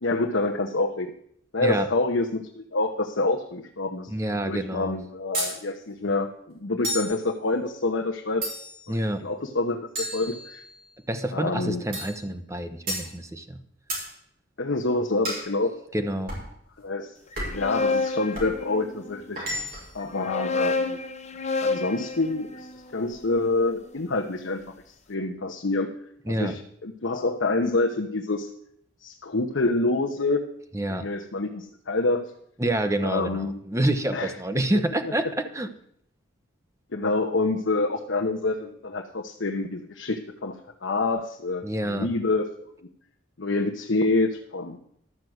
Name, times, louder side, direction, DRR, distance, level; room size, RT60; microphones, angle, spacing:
voice 1, 0.0-1.1 1.5-4.1 4.4-8.5 8.9-10.6 11.3-11.8 14.6-15.7 16.8-17.2 17.5-19.4 19.9-21.0 21.6-24.6 25.1-25.9 26.3-28.5 29.0-30.4 30.9-32.3 33.0-33.6 34.1-34.3 36.9-42.5 43.4-44.8, left 2 dB, 70° left, 1 dB, 0.9 m, -27 dB
voice 2, 4.1-5.0 8.9-9.2 11.1-13.6 15.9-16.3 26.3-26.5 30.7-31.1 32.6-35.7 41.6-42.1, right 1 dB, 15° right, 8 dB, 1.0 m, -27 dB
sound 1, 5.3-5.6 6.8-7.2 8.4-8.9 10.0-10.9 11.9-12.2 12.9-13.1 13.9-14.1 15.2-15.5 16.3-16.5 17.4-17.7 18.3-18.6 19.4-20.0, right 1 dB, 50° right, 5.1 m, -32 dB
sound 2, 17.3-19.2 20.0-24.2, left 3 dB, 35° left, 0.9 m, -30 dB
12.0 x 6.1 x 7.9 m, 0.68 s
head